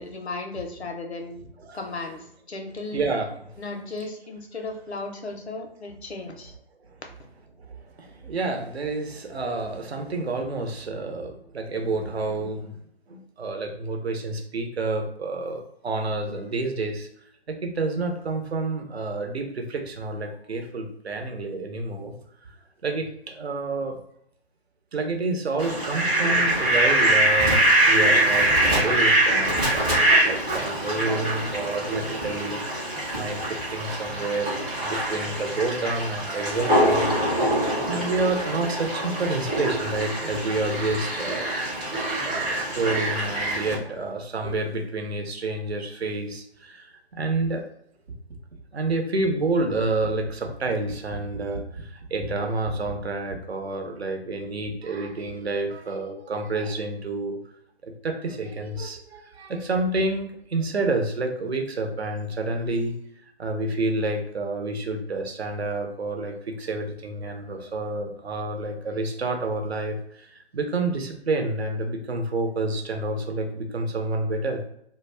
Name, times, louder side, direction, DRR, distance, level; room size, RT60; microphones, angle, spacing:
voice 1, 0.0-1.4 1.7-3.0 3.6-6.5, left 3 dB, 90° left, 3 dB, 0.7 m, -35 dB
voice 2, 2.9-3.3 6.9-7.0 7.6-12.8 13.1-17.1 17.5-22.2 22.8-24.0 24.9-37.1 37.9-41.5 42.2-47.6 48.7-57.4 57.8-62.9 63.4-74.6, right 2 dB, 75° right, 3 dB, 0.8 m, -29 dB
Fowl, 25.6-43.7, right 1 dB, 10° right, 0.4 m, -24 dB
2.3 x 2.2 x 3.3 m, 0.70 s
figure-of-eight pair, 135°, 32 cm